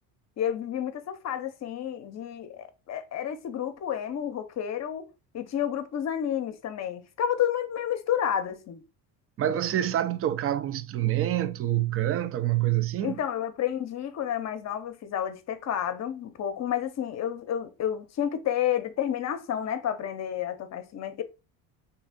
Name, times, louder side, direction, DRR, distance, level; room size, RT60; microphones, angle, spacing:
voice 1, 0.4-5.1 5.3-8.8 13.0-21.2, left 10 dB, 40° left, 0.7 m, -30 dB
voice 2, 9.4-13.2, right 12 dB, 35° right, 0.4 m, -26 dB
3.2 x 2.8 x 3.7 m
supercardioid pair, 100°, 41 cm